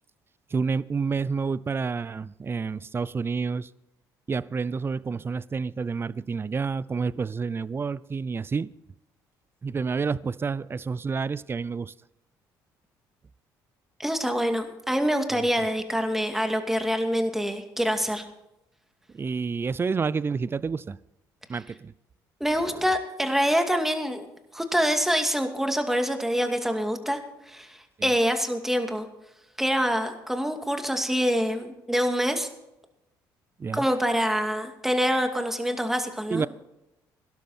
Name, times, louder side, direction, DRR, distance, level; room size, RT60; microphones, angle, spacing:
voice 1, 0.5-3.7 4.3-8.7 9.6-11.9 15.3-15.5 19.1-21.0 21.5-21.9 22.6-22.9 28.0-28.1 33.6-33.8 36.3-36.5, right 5 dB, 30° right, 0.5 m, -29 dB
voice 2, 14.0-18.2 22.4-24.3 24.5-27.2 27.5-29.1 29.6-32.5 33.7-36.5, equal, 5° right, 2.4 m, -25 dB
17.0 x 12.0 x 4.3 m
supercardioid pair, 80°, 8 cm